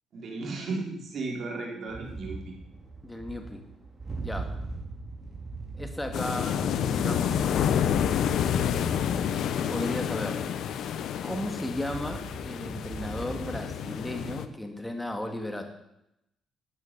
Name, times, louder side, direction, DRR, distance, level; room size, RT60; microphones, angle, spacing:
voice 1, 0.1-2.5, right 3 dB, 60° right, -1 dB, 4.2 m, -35 dB
sound 1, 1.9-10.6 11.1-11.2 11.4-13.9, right 3 dB, 30° right, 4.4 m, -41 dB
voice 2, 3.0-3.6 4.2-4.6 5.8-6.6 6.9-8.0 9.7-10.5 11.2-15.7, left 1 dB, 10° left, 5 dB, 2.2 m, -35 dB
sound 2, 6.1-14.5, left 8 dB, 75° left, 0.8 m, -29 dB
12.5 x 9.2 x 6.9 m, 0.83 s
cardioid pair, 90°, 0 cm